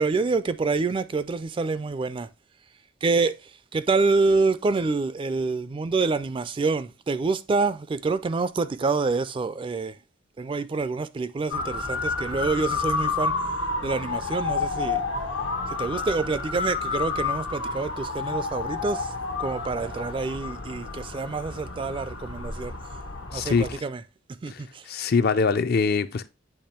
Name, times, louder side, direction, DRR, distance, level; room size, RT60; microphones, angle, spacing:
voice 1, 0.0-2.3 3.0-3.3 3.7-9.9 10.4-13.3 13.8-15.0 15.8-19.1 19.4-22.7 23.3-24.0 24.4-24.8, right 4 dB, 25° right, 0.3 m, -26 dB
Motor vehicle (road) / Siren, 11.5-23.8, left 4 dB, 80° left, 1.0 m, -30 dB
voice 2, 23.3-23.7 24.5-24.6 24.9-26.3, left 5 dB, 55° left, 0.5 m, -23 dB
8.6 x 3.0 x 4.3 m
head